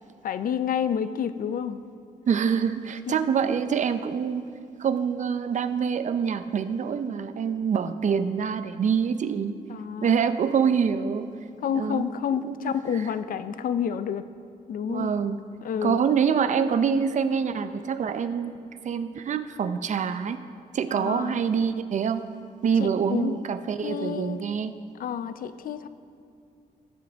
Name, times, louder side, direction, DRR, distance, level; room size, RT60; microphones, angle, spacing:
voice 1, 0.2-1.8 3.1-3.2 9.7-10.2 11.6-14.2 14.7-15.1 15.6-16.0 20.9-21.4 22.8-23.4 23.8-24.4 25.0-25.9, left 8 dB, 65° left, 12 dB, 0.5 m, -29 dB
voice 2, 2.3-4.4 4.8-9.5 10.0-11.3 11.7-12.0 12.4-12.7 14.9-15.4 15.8-20.4 20.7-22.2 22.6-24.7, right 7 dB, 50° right, 11 dB, 0.5 m, -25 dB
15.5 x 7.3 x 3.5 m, 2.4 s
cardioid pair, 90°, 15 cm